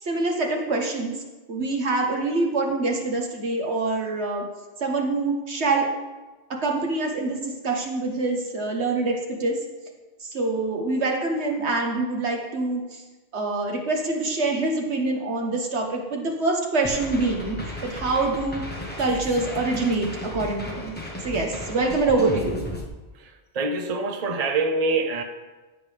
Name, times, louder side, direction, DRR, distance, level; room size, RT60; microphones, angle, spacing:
voice 1, 0.0-1.2 1.5-4.5 4.8-5.9 6.5-9.6 10.2-13.0 13.3-18.7 19.0-20.9 21.2-22.6, right 3 dB, 80° right, 2 dB, 1.6 m, -25 dB
sound 1, 16.8-22.8, left 1 dB, 10° left, 1.3 m, -35 dB
voice 2, 23.2-25.2, right 3 dB, 40° right, 6 dB, 0.9 m, -25 dB
14.5 x 7.7 x 3.5 m, 1.2 s
omnidirectional pair, 1.1 m